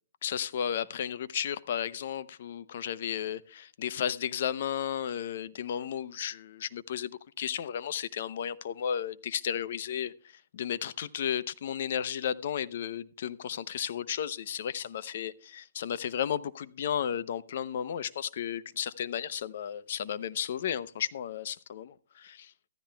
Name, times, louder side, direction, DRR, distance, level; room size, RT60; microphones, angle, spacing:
voice 1, 0.2-22.5, left 9 dB, 60° left, 0.7 m, -34 dB
14.5 x 13.5 x 2.3 m
hypercardioid pair, 150°, 0 cm